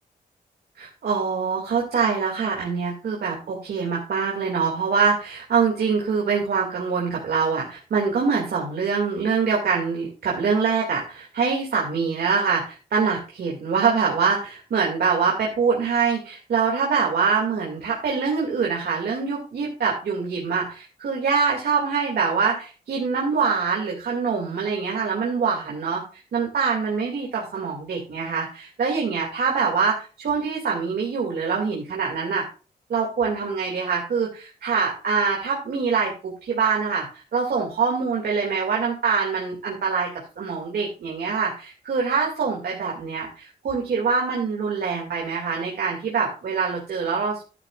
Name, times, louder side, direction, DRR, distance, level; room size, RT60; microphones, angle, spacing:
voice 1, 0.8-26.0 26.3-32.4 32.9-47.4, right 5 dB, 70° right, -2 dB, 2.4 m, -24 dB
11.0 x 9.9 x 2.5 m, 0.36 s
cardioid pair, 90°, 17 cm